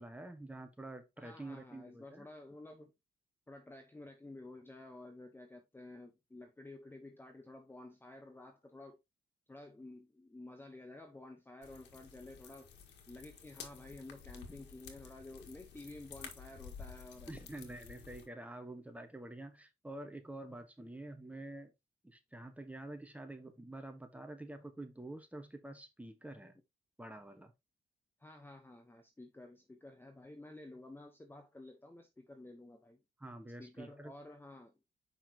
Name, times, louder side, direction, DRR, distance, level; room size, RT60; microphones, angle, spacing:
voice 1, 0.0-2.3 17.3-21.7 22.0-26.6 27.0-27.5 33.2-34.1, right 1 dB, 10° right, 1.4 m, -48 dB
voice 2, 1.2-2.9 3.5-9.0 9.5-12.7 13.1-17.5 28.2-33.0 33.6-34.8, left 2 dB, 10° left, 1.1 m, -52 dB
sound 1, 11.6-18.3, left 6 dB, 90° left, 1.8 m, -52 dB
7.3 x 5.6 x 3.0 m
cardioid pair, 105°, 17 cm